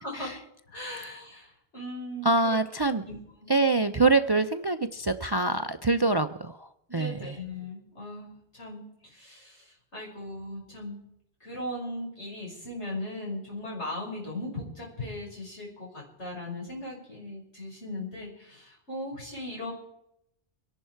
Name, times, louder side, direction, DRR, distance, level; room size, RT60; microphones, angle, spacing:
voice 1, 0.0-0.4 0.7-2.6 3.0-3.5 6.9-11.1 11.4-19.7, left 1 dB, 90° left, -3 dB, 6.0 m, -38 dB
voice 2, 2.2-3.0 3.5-7.4, right 3 dB, 35° right, 10 dB, 0.4 m, -25 dB
24.5 x 11.0 x 4.6 m, 0.80 s
omnidirectional pair, 1.1 m